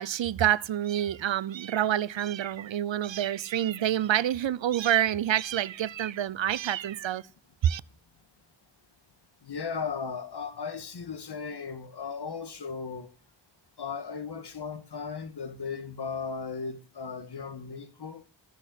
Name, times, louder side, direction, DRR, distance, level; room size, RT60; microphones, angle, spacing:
voice 1, 0.0-7.2 7.6-7.8, right 11 dB, 85° right, 0.7 m, -27 dB
voice 2, 9.4-13.1 13.8-18.2, left 5 dB, 65° left, 1.7 m, -36 dB
14.5 x 6.4 x 9.9 m
wide cardioid pair, 135°, 44 cm